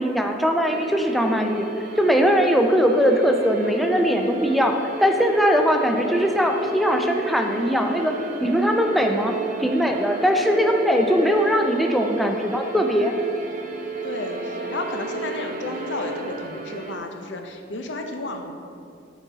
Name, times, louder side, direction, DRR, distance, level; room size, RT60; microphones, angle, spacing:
voice 1, 0.0-1.7 2.0-8.1 8.4-9.3 9.6-13.1, equal, ahead, 3 dB, 0.4 m, -20 dB
sound 1, 0.6-17.0, right 2 dB, 45° right, 0.7 m, -32 dB
voice 2, 14.0-18.5, left 2 dB, 80° left, 4 dB, 0.6 m, -32 dB
8.3 x 4.0 x 4.0 m, 2.5 s
head